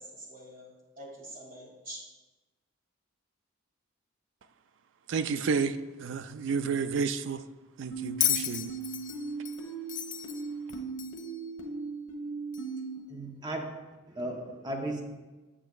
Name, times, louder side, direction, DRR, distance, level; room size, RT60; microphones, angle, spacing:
voice 1, 0.0-2.0, right 1 dB, 40° right, -3 dB, 2.4 m, -46 dB
voice 2, 5.1-7.4 7.8-8.7, right 5 dB, 65° right, 12 dB, 0.3 m, -31 dB
sound 1, 7.9-13.0, right 4 dB, 85° left, 1.2 m, -38 dB
Bell, 8.2-11.4 12.5-12.6, left 11 dB, 40° left, 0.4 m, -33 dB
voice 3, 13.1-13.8 14.1-15.0, right 1 dB, 20° right, 2 dB, 0.7 m, -35 dB
8.2 x 7.6 x 2.3 m, 1.2 s
head